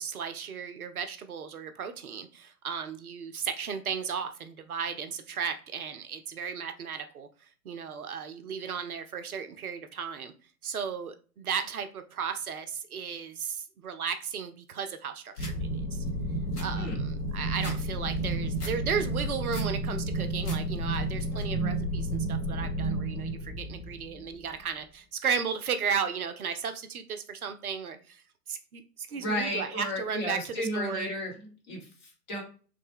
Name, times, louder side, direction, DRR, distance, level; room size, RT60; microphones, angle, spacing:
voice 1, 0.0-7.3 7.7-10.3 10.6-16.0 16.6-28.2 28.5-31.1, right 6 dB, 65° right, 8 dB, 0.5 m, -35 dB
sound 1, 15.4-15.6 16.0-16.1 16.4-17.8 18.1-18.8 19.2-19.7 20.1-20.6 20.9-21.4, left 2 dB, 75° left, 1.2 m, -44 dB
sound 2, 15.4-24.6, right 1 dB, 55° left, 1.2 m, -31 dB
voice 2, 29.1-32.4, left 1 dB, 30° left, 0 dB, 0.9 m, -34 dB
3.1 x 2.1 x 3.3 m, 0.38 s
figure-of-eight pair, 120°, 48 cm